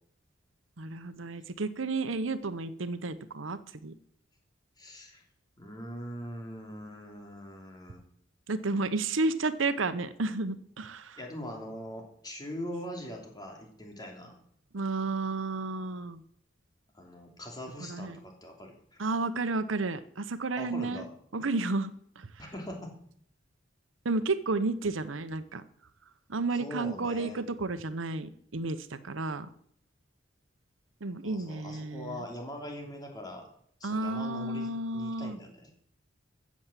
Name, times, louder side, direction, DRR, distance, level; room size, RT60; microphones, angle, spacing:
voice 1, 0.8-3.9 8.5-11.2 14.7-16.2 17.8-18.2 19.0-21.1 21.3-21.9 22.2-22.3 24.0-25.6 26.3-29.5 31.0-32.2 33.8-35.4, right 3 dB, 90° right, 13 dB, 0.9 m, -32 dB
voice 2, 4.8-5.2 5.6-8.0 11.2-14.4 16.9-19.0 20.6-21.1 22.4-22.9 26.5-27.4 31.2-33.5 33.8-35.7, equal, 20° left, 1 dB, 3.2 m, -42 dB
15.0 x 7.3 x 7.4 m, 0.65 s
head